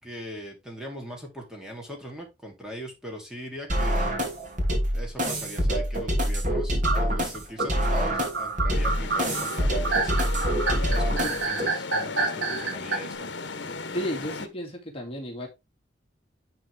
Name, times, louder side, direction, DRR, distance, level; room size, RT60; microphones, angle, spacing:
voice 1, 0.0-4.2 4.9-10.2 10.9-13.3, equal, 5° right, 2.9 m, -40 dB
sound 1, 3.7-11.7, equal, 45° right, 2.6 m, -26 dB
sound 2, 6.8-13.0, right 4 dB, 80° right, 1.9 m, -28 dB
sound 3, 8.7-14.5, left 4 dB, 70° left, 1.2 m, -35 dB
voice 2, 13.9-15.5, equal, 30° left, 2.4 m, -33 dB
10.5 x 4.5 x 3.5 m
head